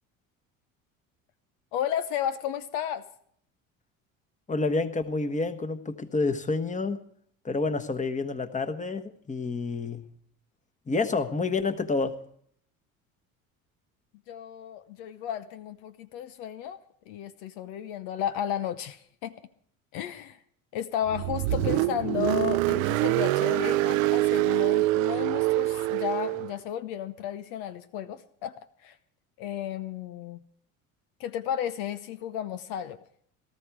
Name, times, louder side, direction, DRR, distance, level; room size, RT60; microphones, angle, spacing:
voice 1, 1.7-3.0 14.3-16.8 17.1-19.3 19.9-20.4 20.7-29.0 29.4-30.4 31.2-33.0, left 10 dB, 65° left, 11 dB, 0.9 m, -33 dB
voice 2, 4.5-7.0 7.4-10.0 10.9-12.1, left 3 dB, 20° left, 8 dB, 1.3 m, -28 dB
Car, 21.1-26.5, right 18 dB, 70° right, 0.6 m, -25 dB
18.0 x 13.5 x 4.7 m, 0.65 s
hypercardioid pair, 70°, 41 cm